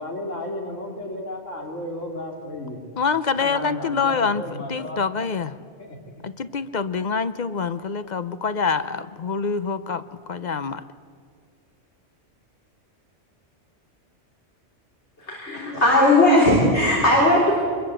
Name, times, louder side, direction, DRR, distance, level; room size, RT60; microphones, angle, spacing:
voice 1, 0.0-2.8 3.4-5.0 5.8-6.0, left 1 dB, 85° left, 1 dB, 3.7 m, -33 dB
voice 2, 3.0-4.4 4.7-5.6 6.2-10.0 10.3-10.8, left 5 dB, 45° left, 13 dB, 0.7 m, -25 dB
voice 3, 15.2-17.5, left 1 dB, 65° left, -2 dB, 4.0 m, -17 dB
24.0 x 21.5 x 7.9 m, 2.2 s
omnidirectional pair, 1.3 m